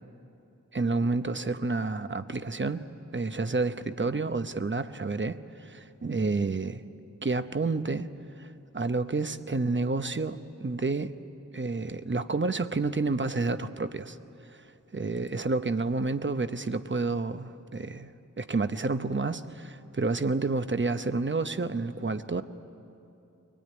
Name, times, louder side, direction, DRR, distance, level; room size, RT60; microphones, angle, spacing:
voice 1, 0.7-2.8 3.1-6.8 7.2-8.1 8.4-11.1 11.5-14.2 14.9-18.1 18.4-22.4, right 3 dB, 35° right, 10 dB, 0.9 m, -29 dB
23.5 x 19.0 x 9.6 m, 2.8 s
wide cardioid pair, 60°, 32 cm